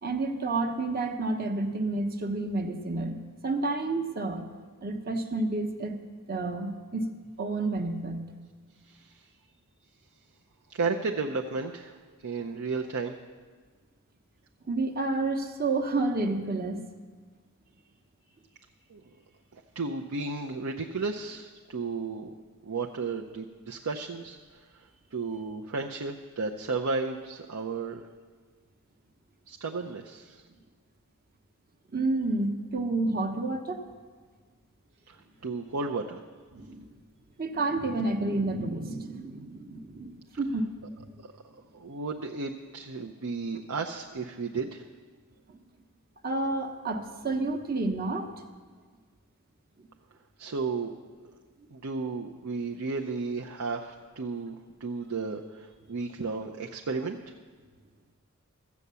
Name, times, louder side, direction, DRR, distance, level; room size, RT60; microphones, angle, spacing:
voice 1, 0.0-4.5 4.8-6.0 6.3-7.1 7.4-8.3 14.7-16.8 31.9-33.8 36.5-36.9 37.4-40.7 46.2-48.3, right 2 dB, 45° right, 5 dB, 1.0 m, -30 dB
voice 2, 8.9-9.3 10.7-13.2 18.9-19.0 19.5-22.3 22.6-28.0 29.5-30.4 35.1-36.2 41.2-41.3 41.7-44.8 50.4-50.9 51.2-51.3 51.7-57.3, right 4 dB, 75° right, 2 dB, 0.6 m, -34 dB
14.5 x 8.4 x 6.8 m, 1.5 s
head